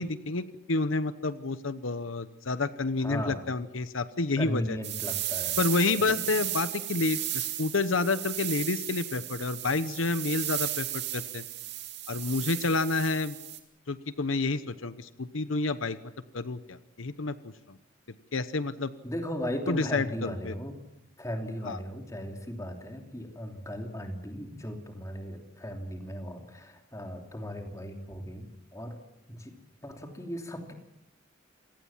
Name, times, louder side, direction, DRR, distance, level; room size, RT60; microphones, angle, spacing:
voice 1, 0.0-4.8 5.6-11.4 12.1-13.4 13.9-16.0 16.3-17.8 18.3-18.9 19.7-20.5 21.7-21.8, left 3 dB, 85° left, 13 dB, 1.0 m, -29 dB
voice 2, 3.0-3.5 4.4-5.6 6.0-6.2 19.0-20.8 21.2-29.0 29.3-29.5 29.8-30.7, equal, 15° left, 4 dB, 3.1 m, -37 dB
sound 1, 4.8-13.6, right 13 dB, 55° right, 2.5 m, -35 dB
27.5 x 18.0 x 7.4 m, 0.89 s
head